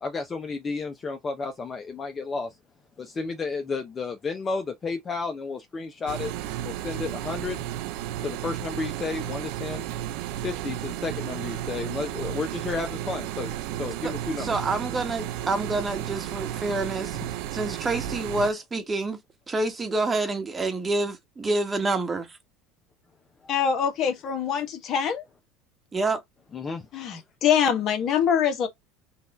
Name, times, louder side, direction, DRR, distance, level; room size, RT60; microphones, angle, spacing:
voice 1, 0.0-2.6 3.0-6.3 6.6-7.6 8.2-9.9 10.4-14.6 17.2-17.3 26.5-26.9, left 4 dB, 25° left, 0.7 m, -32 dB
sound 1, 6.1-18.5, right 12 dB, 70° right, 0.5 m, -33 dB
voice 2, 14.4-17.2 17.5-19.2 19.5-22.4 25.9-26.2, right 2 dB, 20° right, 1.2 m, -27 dB
voice 3, 23.5-25.2 26.9-28.7, left 8 dB, 50° left, 1.2 m, -24 dB
4.0 x 2.5 x 3.4 m
supercardioid pair, 105°, 0 cm